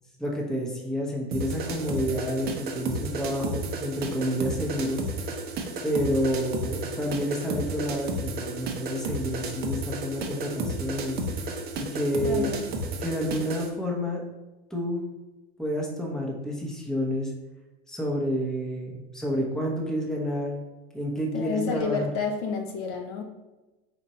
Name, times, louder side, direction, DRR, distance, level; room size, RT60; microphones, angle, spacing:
voice 1, 0.2-5.0 5.8-11.5 11.8-12.5 13.0-14.2 14.7-15.0 15.6-17.3 17.9-20.6 20.9-22.1, equal, ahead, -2 dB, 0.8 m, -29 dB
sound 1, 1.3-13.7, right 2 dB, 30° right, 0.7 m, -33 dB
voice 2, 12.2-12.6 21.3-23.2, left 5 dB, 50° left, 2 dB, 0.7 m, -29 dB
4.4 x 2.5 x 4.1 m, 1.1 s
supercardioid pair, 115°, 31 cm